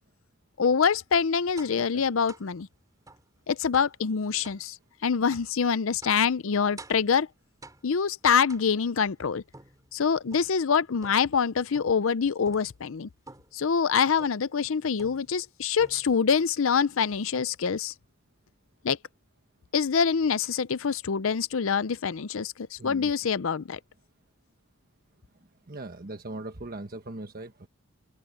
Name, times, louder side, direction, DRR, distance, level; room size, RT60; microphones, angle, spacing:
voice 1, 0.6-2.7 3.5-4.8 5.0-7.3 7.8-9.4 9.9-13.1 13.5-17.9 18.8-19.0 19.7-23.8, left 6 dB, 65° left, 0.5 m, -25 dB
sound 1, 1.6-1.9 2.3-2.5 3.1-3.3 3.7-4.0 4.4-4.7 5.3-5.5 6.0-6.3 6.8-7.1 7.6-8.0 8.5-9.0 9.5-10.6 11.0-11.4 11.7-12.1 12.4-12.8 13.3-13.6 14.2-14.5 15.0-15.5 15.8-16.3, right 2 dB, 15° right, 5.0 m, -50 dB
voice 2, 1.7-2.0 22.8-23.2 25.7-27.7, right 2 dB, 45° right, 1.2 m, -40 dB
head